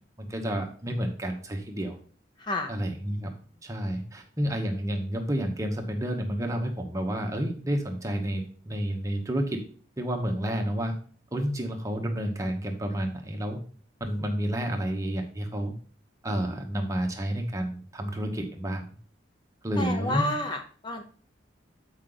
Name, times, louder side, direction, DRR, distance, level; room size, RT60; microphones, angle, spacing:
voice 1, 0.2-2.0 2.7-3.3 3.6-9.6 10.0-11.0 11.3-13.6 14.0-15.7 16.2-18.9 19.6-20.3, equal, 15° right, 3 dB, 1.0 m, -30 dB
voice 2, 2.4-2.7 19.8-21.0, left 2 dB, 25° left, 4 dB, 0.6 m, -30 dB
8.2 x 4.9 x 3.8 m, 0.42 s
head